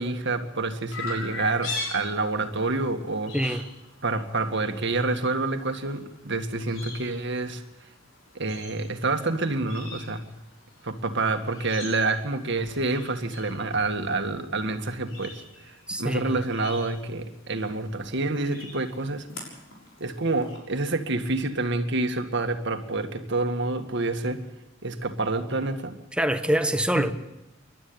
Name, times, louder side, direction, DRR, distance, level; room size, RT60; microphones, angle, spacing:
voice 1, 0.0-3.6 4.0-7.6 8.4-10.2 10.8-19.3 20.0-24.4 24.8-26.0 27.0-27.1, right 3 dB, 60° right, 2.0 m, -28 dB
Chirp tweet, 0.9-20.6, left 3 dB, 75° left, 6.7 m, -43 dB
voice 2, 3.3-3.7 15.9-16.4 26.1-27.1, right 1 dB, 5° right, 1.2 m, -25 dB
29.0 x 12.5 x 8.8 m
head